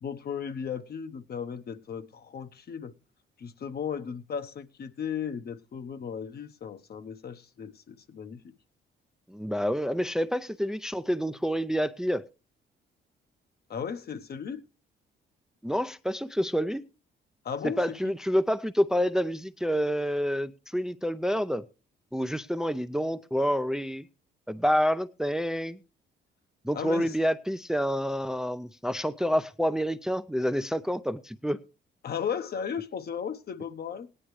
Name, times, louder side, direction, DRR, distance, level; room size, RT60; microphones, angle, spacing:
voice 1, 0.0-2.9 3.4-8.4 13.7-14.6 17.4-18.1 26.7-27.1 32.0-34.1, left 7 dB, 50° left, 1.0 m, -35 dB
voice 2, 9.3-12.2 15.6-16.8 17.6-21.7 22.1-24.1 24.5-25.8 26.6-31.6, equal, 5° right, 0.5 m, -28 dB
17.5 x 9.9 x 3.2 m
cardioid pair, 90°, 20 cm